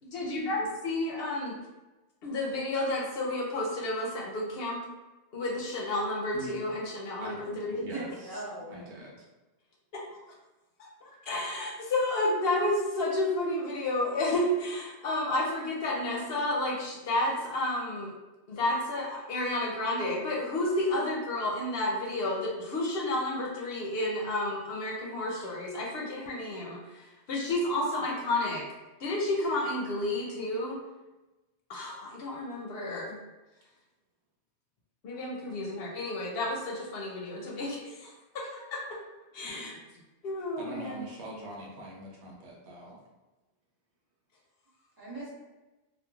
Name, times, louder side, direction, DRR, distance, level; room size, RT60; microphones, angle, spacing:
voice 1, 0.0-1.6 2.2-4.8 5.3-7.8 11.0-18.1 18.5-28.7 29.0-30.8 31.7-33.2 35.0-39.0 39.3-39.8 40.2-41.0, left 1 dB, 65° left, -1 dB, 0.7 m, -31 dB
voice 2, 7.2-8.3 8.7-9.2 40.6-43.0, right 1 dB, 85° right, -2 dB, 1.0 m, -43 dB
voice 3, 7.9-8.8 39.4-39.8 45.0-45.3, right 2 dB, 20° right, -8 dB, 0.9 m, -40 dB
3.0 x 2.2 x 2.3 m, 1.1 s
omnidirectional pair, 1.1 m